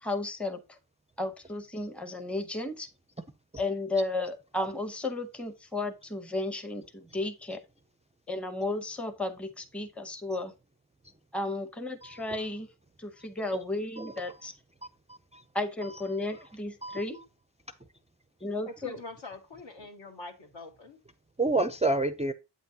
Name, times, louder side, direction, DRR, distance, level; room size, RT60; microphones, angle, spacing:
voice 1, 0.0-0.8 1.2-2.9 3.6-7.6 8.3-10.5 11.3-12.7 13.0-14.5 15.5-17.2 18.4-19.0, left 2 dB, 5° left, 0.7 m, -33 dB
voice 2, 15.1-15.4 16.8-17.0 21.4-22.3, right 2 dB, 15° right, 0.4 m, -28 dB
voice 3, 18.7-21.0, left 3 dB, 70° left, 1.8 m, -44 dB
8.2 x 5.8 x 2.7 m
wide cardioid pair, 120°, 48 cm